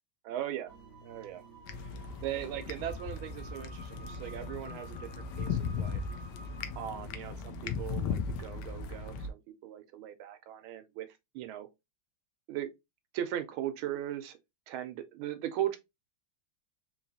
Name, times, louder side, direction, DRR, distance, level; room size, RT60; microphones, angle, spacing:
voice 1, 0.2-0.7 1.0-1.4 2.2-6.0 6.8-11.7 12.5-12.7 13.1-14.4 14.7-15.8, right 12 dB, 75° right, 1.4 m, -38 dB
sound 1, 0.7-7.3, right 1 dB, 45° left, 1.8 m, -52 dB
sound 2, 1.6-9.3, left 5 dB, 75° left, 1.0 m, -37 dB
3.8 x 3.1 x 2.7 m
omnidirectional pair, 2.4 m